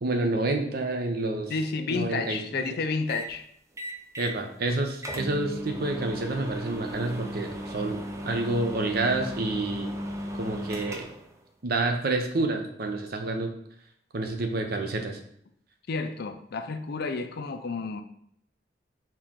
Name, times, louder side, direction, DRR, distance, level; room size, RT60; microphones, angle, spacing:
voice 1, 0.0-1.5 1.9-2.6 4.2-9.9 10.3-11.1 11.6-13.5 14.1-15.2, right 2 dB, 55° right, 4 dB, 0.7 m, -29 dB
voice 2, 1.5-3.4 15.9-18.0, left 4 dB, 55° left, 7 dB, 0.4 m, -31 dB
sound 1, 3.1-3.3 3.8-4.4 4.7-4.8 5.0-11.3, equal, 15° right, 0.5 m, -36 dB
4.4 x 3.0 x 3.7 m, 0.69 s
head